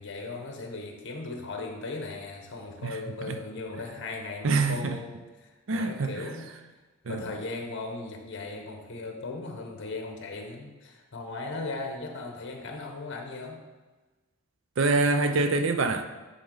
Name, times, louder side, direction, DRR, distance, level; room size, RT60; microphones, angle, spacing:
voice 1, 0.0-6.5 7.1-13.6, left 3 dB, 55° left, 3 dB, 1.0 m, -37 dB
voice 2, 2.8-3.4 4.4-5.0 5.7-6.3 7.1-7.3 14.8-16.0, right 3 dB, 65° right, 7 dB, 0.5 m, -26 dB
9.2 x 3.7 x 3.8 m, 1.2 s
head